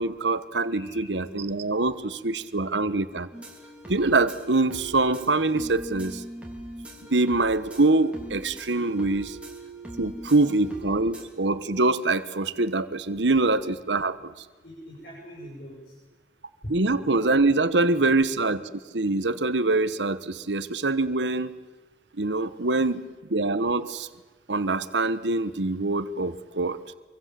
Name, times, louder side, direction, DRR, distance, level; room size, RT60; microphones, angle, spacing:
voice 1, 0.0-3.3 3.9-6.2 7.1-9.4 10.0-14.3 16.7-18.6 18.9-21.6 22.2-23.0 23.3-24.1 24.5-26.8, right 2 dB, 90° right, 13 dB, 1.3 m, -24 dB
voice 2, 0.7-1.2 10.2-10.3 14.6-15.9 17.9-18.2, equal, 60° left, -3 dB, 7.5 m, -44 dB
sound 1, 3.3-11.3, right 1 dB, 5° right, 3.5 m, -41 dB
26.0 x 24.5 x 7.7 m, 1.2 s
head